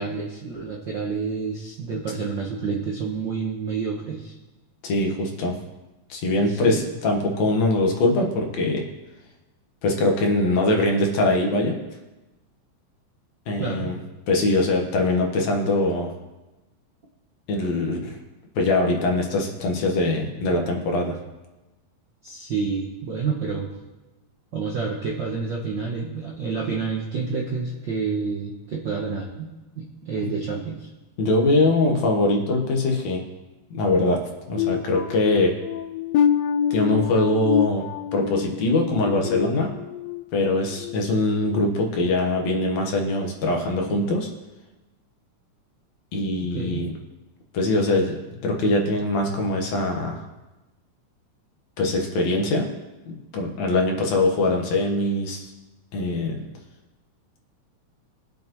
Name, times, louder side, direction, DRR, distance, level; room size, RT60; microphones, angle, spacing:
voice 1, 0.0-4.3 6.5-6.8 13.6-13.9 22.2-23.7 24.5-29.5 29.8-30.9 46.4-46.8, right 5 dB, 60° right, -2 dB, 1.2 m, -29 dB
voice 2, 4.8-5.6 6.1-8.8 9.8-11.8 13.5-14.0 14.3-16.1 17.5-18.2 18.6-21.2 31.2-33.2 33.7-34.2 34.5-35.5 36.7-37.9 38.1-39.7 40.3-44.3 46.1-46.9 47.5-48.2 48.4-50.3 51.8-52.7 53.3-55.5 55.9-56.5, left 2 dB, 65° left, 1 dB, 2.4 m, -22 dB
sound 1, 34.6-40.2 40.7-40.9 41.5-41.6, left 8 dB, 80° left, 1.5 m, -26 dB
22.5 x 7.8 x 3.0 m, 1.1 s
omnidirectional pair, 3.6 m